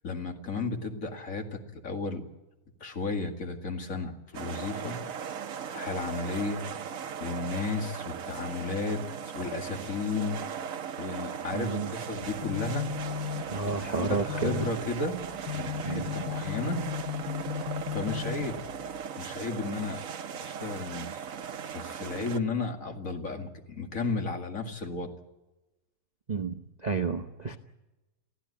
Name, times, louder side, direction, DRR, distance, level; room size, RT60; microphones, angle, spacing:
voice 1, 0.0-2.2 2.8-5.0 5.7-6.6 7.2-10.4 11.0-12.9 14.0-15.2 15.5-16.8 17.9-18.6 19.2-20.0 20.4-21.3 21.7-25.1, left 3 dB, 55° left, 4 dB, 2.5 m, -33 dB
sound 1, 4.3-22.4, right 7 dB, 60° right, 1.2 m, -38 dB
voice 2, 11.5-11.9 13.5-14.7 15.8-16.1 26.3-27.6, right 4 dB, 35° right, 5 dB, 0.8 m, -31 dB
sound 2, 12.2-19.1, left 8 dB, 75° left, 1.5 m, -36 dB
23.5 x 15.5 x 8.6 m, 1.0 s
omnidirectional pair, 1.7 m